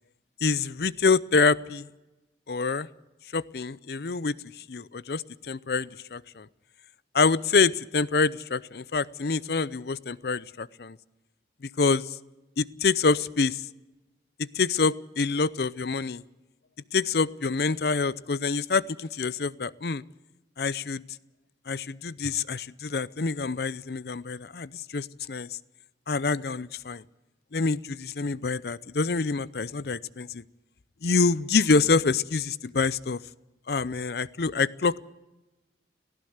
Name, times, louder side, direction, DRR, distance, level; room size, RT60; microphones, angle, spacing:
voice 1, 0.4-1.9 2.5-2.9 3.3-6.5 7.1-11.0 11.6-12.2 12.6-13.7 14.4-16.2 16.9-20.0 20.6-21.0 21.7-25.6 26.1-27.0 27.5-30.4 31.0-33.2 33.7-35.0, left 4 dB, 65° left, 20 dB, 0.6 m, -26 dB
18.5 x 15.0 x 9.4 m, 1.1 s
head